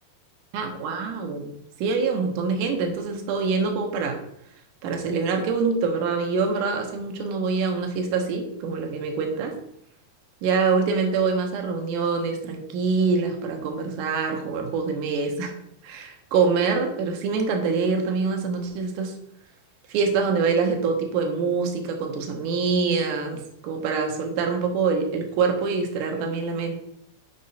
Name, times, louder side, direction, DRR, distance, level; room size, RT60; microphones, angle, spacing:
voice 1, 0.5-1.5 1.8-4.2 4.8-9.5 10.4-15.5 15.8-19.1 19.9-26.7, right 5 dB, 70° right, 3 dB, 2.1 m, -25 dB
6.4 x 5.5 x 4.0 m, 0.74 s
omnidirectional pair, 4.6 m